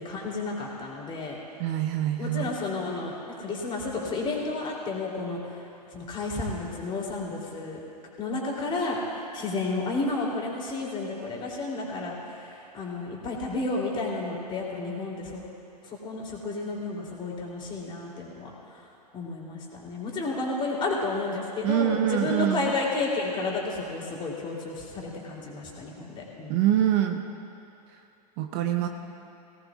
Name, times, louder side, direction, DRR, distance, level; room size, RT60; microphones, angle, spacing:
voice 1, 0.0-1.4 2.2-5.6 5.9-7.8 8.2-9.0 9.3-15.4 16.0-18.5 19.1-26.6 28.8-28.9, left 3 dB, 25° left, -3 dB, 3.2 m, -31 dB
voice 2, 1.6-2.5 21.6-22.7 26.5-27.2 28.4-28.9, right 11 dB, 40° right, 5 dB, 0.8 m, -25 dB
20.0 x 17.5 x 2.4 m, 2.7 s
hypercardioid pair, 110°, 21 cm